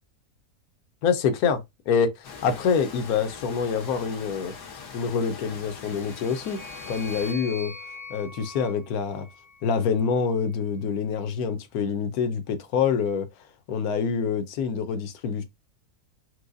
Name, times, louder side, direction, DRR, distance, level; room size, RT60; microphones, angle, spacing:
voice 1, 1.0-4.5 4.9-6.6 6.9-7.7 8.1-9.3 9.6-13.3 13.7-15.4, left 6 dB, 70° left, 1.1 m, -26 dB
sound 1, 2.2-7.3, left 5 dB, 90° left, 1.6 m, -42 dB
sound 2, 5.8-10.1, left 2 dB, 40° right, 0.9 m, -43 dB
4.6 x 2.1 x 2.5 m
omnidirectional pair, 1.7 m